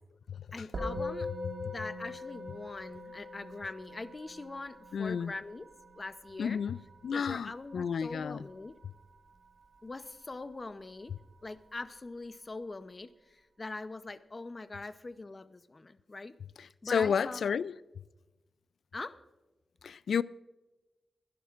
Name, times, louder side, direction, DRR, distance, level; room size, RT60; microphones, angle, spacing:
voice 1, 0.5-1.3 1.6-5.7 6.0-6.6 7.1-8.7 9.8-11.1 11.4-16.3 16.8-17.6 18.9-19.2, left 3 dB, 30° left, 0.7 m, -42 dB
Musical instrument, 0.7-10.3, left 2 dB, 60° right, 1.7 m, -43 dB
voice 2, 4.9-5.3 6.4-6.8 7.0-8.4 16.9-17.7 19.8-20.2, left 6 dB, 80° left, 0.3 m, -31 dB
22.5 x 11.5 x 2.5 m
wide cardioid pair, 120°, 0 cm